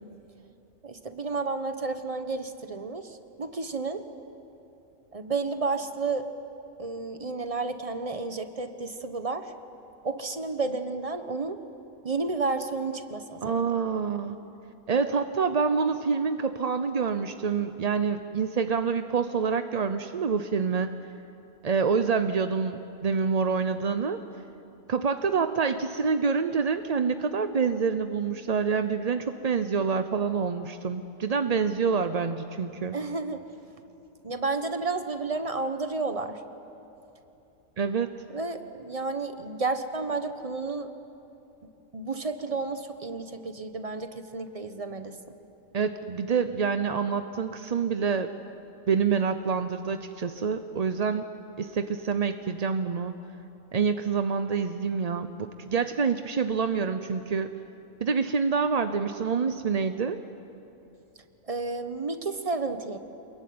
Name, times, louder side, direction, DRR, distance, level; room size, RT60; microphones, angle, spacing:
voice 1, 0.8-4.0 5.1-6.2 6.8-9.5 10.0-11.6 12.0-13.4 32.9-33.4 34.2-36.4 38.3-40.9 41.9-45.2 61.5-63.0, right 3 dB, 25° right, 9 dB, 1.2 m, -31 dB
voice 2, 13.4-14.4 14.9-21.0 21.6-24.2 24.9-33.0 37.8-38.1 45.7-48.3 48.9-51.3 51.6-53.1 53.7-57.5 58.0-60.2, right 5 dB, 40° right, 9 dB, 0.6 m, -27 dB
26.5 x 22.0 x 9.5 m, 2.9 s
omnidirectional pair, 1.5 m